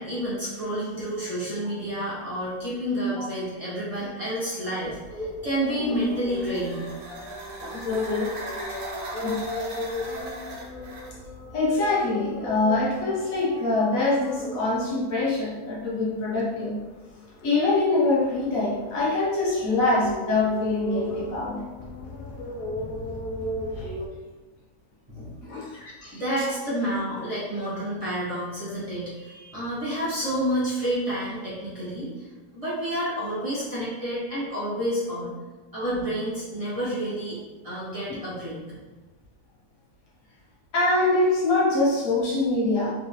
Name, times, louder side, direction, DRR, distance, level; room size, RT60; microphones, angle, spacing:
voice 1, 0.0-6.9 25.1-25.8 26.1-32.3 32.5-35.4 35.7-37.4 37.6-38.8, equal, 25° right, -11 dB, 1.2 m, -29 dB
sound 1, 4.8-24.1, left 1 dB, 85° left, 1.2 m, -37 dB
sound 2, 5.9-11.2, right 1 dB, 65° right, 1.1 m, -38 dB
voice 2, 7.6-8.3 9.2-9.4 11.5-16.8 17.4-21.7 23.8-23.9 25.4-26.2 40.7-42.9, left 2 dB, 65° left, -5 dB, 1.1 m, -24 dB
3.5 x 3.2 x 2.7 m, 1.2 s
omnidirectional pair, 1.7 m